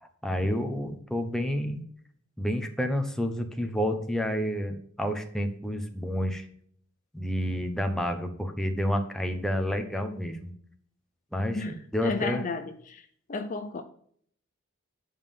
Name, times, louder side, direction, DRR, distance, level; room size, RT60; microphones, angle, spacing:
voice 1, 0.0-1.8 2.4-6.5 7.1-10.5 11.3-12.5, equal, ahead, 4 dB, 1.1 m, -29 dB
voice 2, 12.0-13.8, left 3 dB, 40° left, 8 dB, 0.6 m, -33 dB
8.9 x 5.5 x 5.3 m, 0.62 s
head